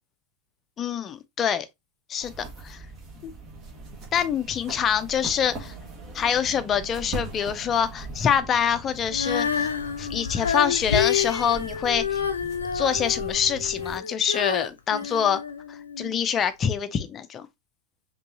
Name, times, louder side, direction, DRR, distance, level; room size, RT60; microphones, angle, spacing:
voice 1, 0.8-1.7 2.1-2.8 3.2-3.3 4.1-5.7 6.1-9.7 10.0-12.2 12.7-15.4 15.7-17.5, left 8 dB, 25° left, 0.6 m, -25 dB
sound 1, 2.2-14.0, right 2 dB, 30° right, 1.5 m, -40 dB
Female singing, 9.1-16.2 16.8-16.9, left 7 dB, 70° left, 0.5 m, -28 dB
5.3 x 3.0 x 2.7 m
figure-of-eight pair, 90°, 0 cm